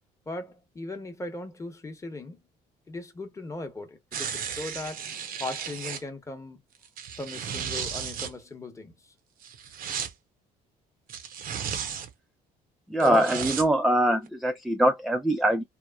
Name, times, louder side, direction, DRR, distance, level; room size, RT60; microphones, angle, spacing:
voice 1, 0.3-2.4 2.9-6.6 7.2-9.1, left 2 dB, 15° left, 0.9 m, -38 dB
sound 1, 4.1-6.0 6.8-8.3 9.4-10.1 11.1-12.1 13.0-13.7 14.3-14.4, right 8 dB, 60° right, 0.7 m, -34 dB
voice 2, 12.9-15.6, right 1 dB, ahead, 0.4 m, -23 dB
3.0 x 2.0 x 2.3 m
cardioid pair, 110°, 17 cm